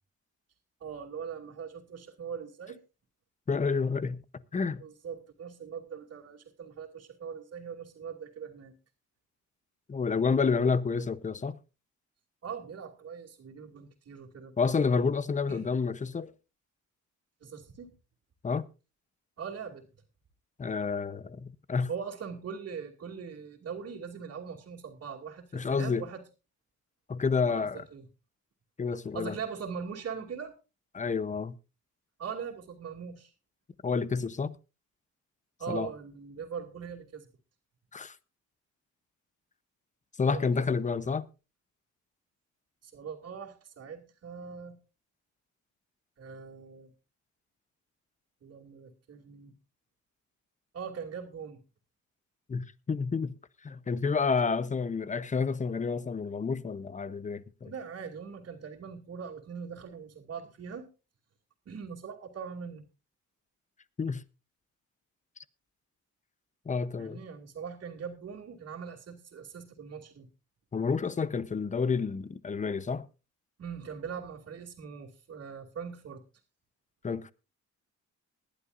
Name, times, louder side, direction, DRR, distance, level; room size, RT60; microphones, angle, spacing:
voice 1, 0.8-2.8 4.8-8.7 12.4-14.5 15.5-15.7 17.4-18.0 19.4-19.9 21.9-26.2 27.4-28.1 29.1-30.5 32.2-33.3 35.6-37.3 40.2-40.8 42.8-44.8 46.2-46.9 48.4-49.5 50.7-51.6 57.6-60.9 61.7-62.8 67.0-70.3 73.6-76.2, right 6 dB, 50° right, 2.6 m, -41 dB
voice 2, 3.5-4.2 4.5-4.8 9.9-11.6 14.6-16.3 18.4-18.7 20.6-21.9 25.5-26.0 27.1-27.8 28.8-29.3 30.9-31.5 33.8-34.5 35.7-35.9 37.9-38.1 40.2-41.2 52.5-53.3 53.6-57.7 64.0-64.2 66.7-67.2 70.7-73.1 77.0-77.3, left 5 dB, 25° left, 0.8 m, -29 dB
20.5 x 11.0 x 2.6 m
cardioid pair, 90°, 30 cm